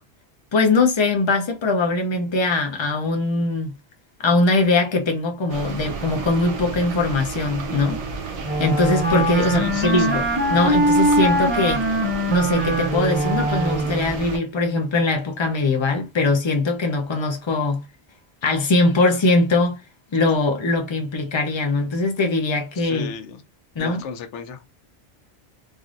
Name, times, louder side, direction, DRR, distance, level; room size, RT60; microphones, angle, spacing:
voice 1, 0.5-3.7 4.2-8.0 8.6-11.9 12.3-17.8 18.4-19.8 20.1-23.1 23.8-24.0, left 3 dB, 35° left, 0.5 m, -21 dB
sound 1, 5.5-14.4, right 4 dB, 90° right, 1.0 m, -32 dB
Wind instrument woodwind instrument, 8.4-14.2, right 1 dB, 15° right, 0.5 m, -22 dB
voice 2, 9.5-10.2 22.8-23.4 23.8-24.7, left 6 dB, 90° left, 0.9 m, -34 dB
3.1 x 2.5 x 2.5 m
omnidirectional pair, 1.2 m